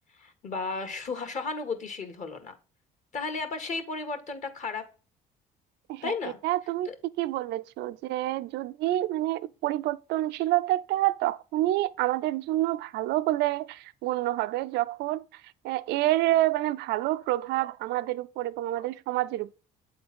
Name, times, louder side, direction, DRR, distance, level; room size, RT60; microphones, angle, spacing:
voice 1, 0.2-2.5 3.1-4.9 6.0-6.4 6.8-6.9, left 4 dB, 45° left, 1.7 m, -34 dB
voice 2, 6.4-6.9 7.2-19.5, right 15 dB, 80° right, 0.4 m, -28 dB
8.5 x 3.8 x 4.3 m
cardioid pair, 110°, 17 cm